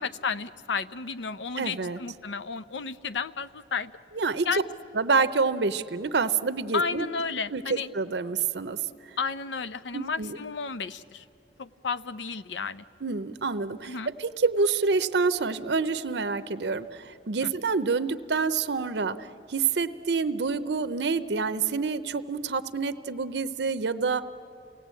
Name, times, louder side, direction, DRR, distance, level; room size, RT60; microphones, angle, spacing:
voice 1, 0.0-3.9 4.5-4.7 6.7-7.9 9.2-11.2 11.6-12.8 13.8-14.1 17.4-17.5, left 5 dB, 85° left, 13 dB, 0.6 m, -32 dB
voice 2, 1.6-2.0 4.1-4.6 4.9-7.1 7.5-8.8 9.0-9.1 9.9-10.4 13.0-24.2, right 4 dB, 75° right, 11 dB, 0.7 m, -27 dB
28.0 x 18.0 x 8.3 m, 2.7 s
head